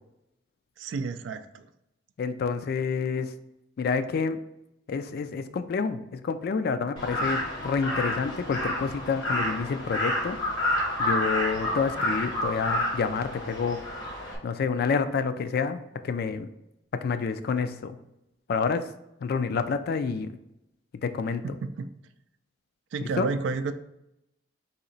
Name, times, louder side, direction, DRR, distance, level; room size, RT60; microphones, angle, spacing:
voice 1, 0.8-1.7 21.4-21.9 22.9-23.7, right 4 dB, 70° right, 11 dB, 0.3 m, -31 dB
voice 2, 2.2-3.3 3.8-4.4 4.9-10.4 11.0-13.8 14.4-16.5 16.9-18.0 18.5-18.9 19.2-20.3 21.0-21.4 23.2-23.3, left 5 dB, 55° left, 10 dB, 0.3 m, -28 dB
Crow, 7.0-14.3, left 1 dB, 75° left, 1.2 m, -29 dB
4.2 x 2.8 x 3.9 m, 0.85 s
head